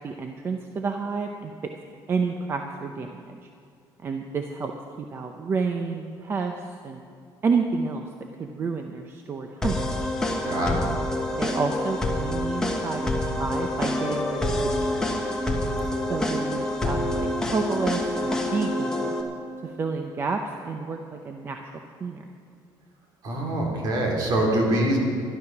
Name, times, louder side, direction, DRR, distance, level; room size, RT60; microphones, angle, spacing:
voice 1, 0.0-1.7 2.1-3.4 4.0-4.7 5.0-7.0 7.4-8.1 8.4-9.8 10.8-11.0 11.4-15.1 16.1-19.2 19.6-21.7 22.0-22.2, right 4 dB, 30° right, 4 dB, 0.7 m, -30 dB
sound 1, 9.6-19.2, left 1 dB, 5° left, 1.3 m, -27 dB
voice 2, 10.4-10.9 23.2-25.0, right 1 dB, 55° right, -1 dB, 3.1 m, -24 dB
12.5 x 12.5 x 6.0 m, 2.3 s
cardioid pair, 160°, 8 cm